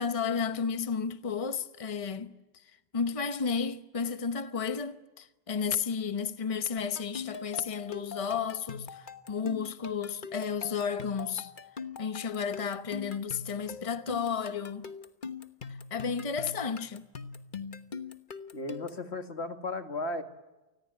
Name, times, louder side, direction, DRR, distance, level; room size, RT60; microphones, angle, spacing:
voice 1, 0.0-11.5 12.0-14.9 15.7-17.1, left 6 dB, 35° left, 1.0 m, -33 dB
sound 1, 6.8-19.1, left 5 dB, 50° left, 1.3 m, -43 dB
voice 2, 18.5-20.2, left 2 dB, 90° left, 2.4 m, -35 dB
29.0 x 20.5 x 9.1 m
omnidirectional pair, 1.1 m